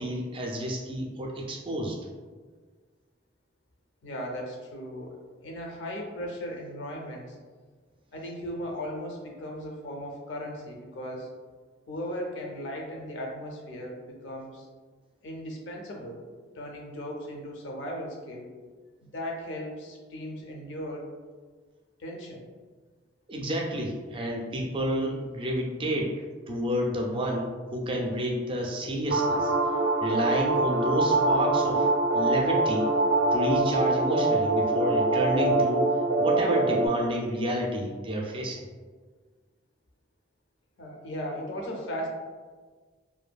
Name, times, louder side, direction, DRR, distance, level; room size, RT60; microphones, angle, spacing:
voice 1, 0.0-2.0 23.3-26.2 26.5-29.5 30.0-32.9 33.3-35.9 36.2-38.6, equal, 25° right, -1 dB, 0.3 m, -30 dB
voice 2, 4.0-7.4 8.1-11.3 11.9-14.7 15.2-16.2 16.5-18.5 19.0-21.1 22.0-22.4 40.8-42.1, equal, 70° left, 0 dB, 0.5 m, -37 dB
sound 1, 29.1-36.9, right 2 dB, 90° right, 0.4 m, -24 dB
2.6 x 2.4 x 2.2 m, 1.5 s
head